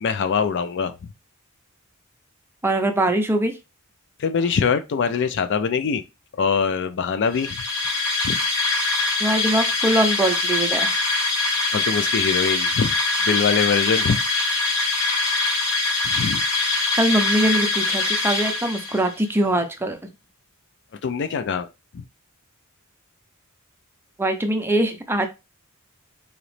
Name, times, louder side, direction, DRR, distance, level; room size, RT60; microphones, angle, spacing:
voice 1, 0.0-1.1 4.2-6.0 6.4-7.6 8.2-8.4 11.7-13.0 13.2-14.2 16.0-16.4 21.0-21.7 21.9-22.0, left 6 dB, 55° left, 0.4 m, -23 dB
voice 2, 2.6-3.5 9.2-10.9 17.0-20.0 24.2-25.3, right 1 dB, 10° right, 0.6 m, -22 dB
sound 1, 7.3-19.1, left 3 dB, 75° left, 1.6 m, -23 dB
3.9 x 3.0 x 3.2 m
head